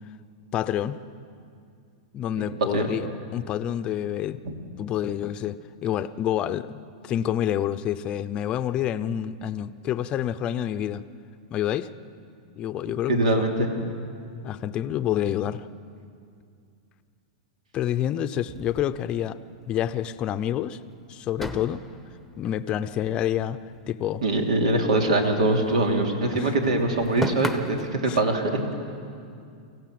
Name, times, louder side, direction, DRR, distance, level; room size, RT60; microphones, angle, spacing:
voice 1, 0.5-1.0 2.1-4.4 4.8-11.0 11.5-11.9 12.6-13.4 14.4-15.7 17.7-19.4 19.7-20.8 21.1-21.8 22.4-23.6 23.9-24.2 26.3-26.5 28.1-28.2, left 11 dB, 30° left, 12 dB, 0.6 m, -28 dB
voice 2, 2.7-3.1 4.4-4.5 12.9-13.8 24.2-28.6, right 2 dB, 85° right, 3 dB, 3.1 m, -23 dB
sound 1, 18.5-19.8 20.1-20.3 20.5-20.7 21.3-23.8 24.1-25.9 26.2-28.0, equal, ahead, 1.0 m, -36 dB
24.0 x 15.5 x 7.7 m, 2.4 s
supercardioid pair, 145°, 4 cm